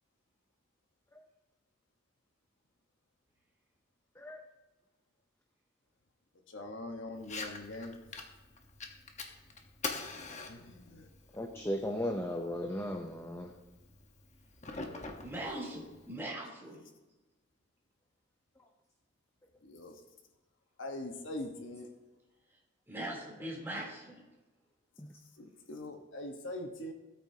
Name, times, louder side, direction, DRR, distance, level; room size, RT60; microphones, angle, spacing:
voice 1, 6.5-8.0 10.5-11.1 11.4-11.7 19.6-20.0 20.8-21.9 25.4-26.9, left 1 dB, 65° left, 3 dB, 1.2 m, -42 dB
Fire, 7.2-16.2, left 3 dB, 35° left, 1.1 m, -45 dB
voice 2, 11.3-13.5 25.0-25.1, left 1 dB, 10° left, 3 dB, 0.6 m, -36 dB
voice 3, 14.9-16.8 22.9-24.2, right 1 dB, 10° right, -4 dB, 3.1 m, -41 dB
16.5 x 9.0 x 2.8 m, 1.1 s
head